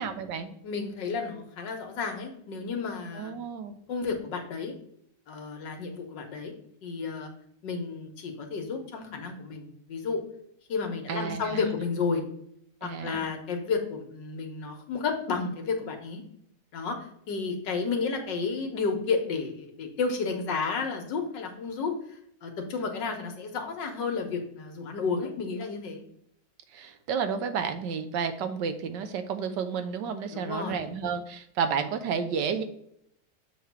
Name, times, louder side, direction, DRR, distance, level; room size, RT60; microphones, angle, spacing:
voice 1, 0.0-0.5 3.1-3.7 11.1-11.6 12.8-13.3 26.7-32.6, right 6 dB, 75° right, 8 dB, 1.4 m, -31 dB
voice 2, 0.6-3.3 3.9-4.8 5.3-6.5 6.8-7.3 7.6-10.2 10.7-12.2 12.8-16.2 16.7-22.0 22.4-26.0 30.3-30.8, left 4 dB, 80° left, 3 dB, 1.8 m, -32 dB
6.9 x 3.3 x 5.9 m, 0.71 s
omnidirectional pair, 1.9 m